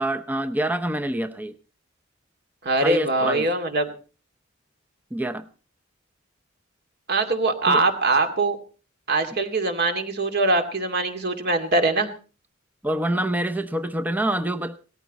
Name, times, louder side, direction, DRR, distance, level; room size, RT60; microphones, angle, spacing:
voice 1, 0.0-1.6 2.8-3.5 5.1-5.5 7.7-7.8 12.8-14.8, right 1 dB, 10° right, 8 dB, 0.7 m, -26 dB
voice 2, 2.6-3.9 7.1-8.6 9.1-12.1, right 2 dB, 50° right, 6 dB, 2.4 m, -22 dB
18.5 x 14.0 x 4.1 m, 0.37 s
head